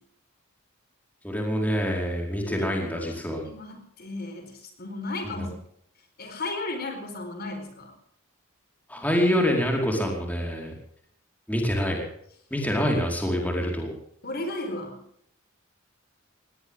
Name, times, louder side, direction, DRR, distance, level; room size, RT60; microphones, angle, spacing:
voice 1, 1.2-3.4 5.2-5.5 8.9-10.7 11.5-12.0 12.5-13.9, equal, 10° left, 0 dB, 4.6 m, -26 dB
voice 2, 2.4-5.5 6.2-7.9 14.2-15.0, left 2 dB, 50° left, 6 dB, 4.5 m, -35 dB
20.5 x 19.0 x 3.7 m, 0.68 s
head